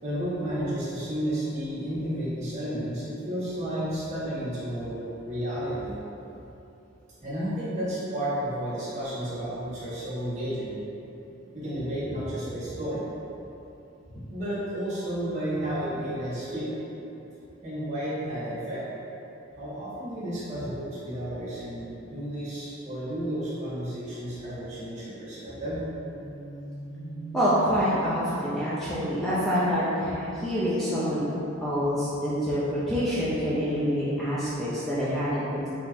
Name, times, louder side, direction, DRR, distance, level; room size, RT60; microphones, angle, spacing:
voice 1, 0.0-5.9 7.2-10.7 11.5-13.0 14.3-16.7 17.6-18.8 19.5-25.8, equal, 35° right, -11 dB, 1.5 m, -32 dB
sound 1, 25.4-32.0, right 2 dB, 85° left, 1.0 m, -41 dB
voice 2, 27.3-31.3 31.6-35.7, equal, ahead, -11 dB, 0.5 m, -26 dB
4.2 x 3.0 x 3.4 m, 2.9 s
head